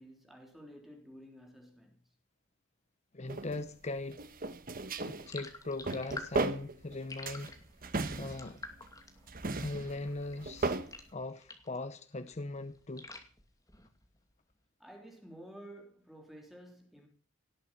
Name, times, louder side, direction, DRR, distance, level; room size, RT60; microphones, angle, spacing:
voice 1, 0.0-2.0 14.8-17.1, equal, ahead, 3.2 m, -52 dB
voice 2, 3.1-4.2 5.1-7.6 8.2-8.6 9.6-10.8 11.1-13.1, left 2 dB, 35° left, 0.8 m, -40 dB
sound 1, 3.3-3.6 4.1-5.3 5.7-7.0 7.3-8.9 9.3-10.9, right 3 dB, 45° right, 1.2 m, -36 dB
sound 2, 5.2-11.8 12.2-14.2, left 2 dB, 20° left, 2.4 m, -50 dB
18.5 x 8.4 x 7.4 m
head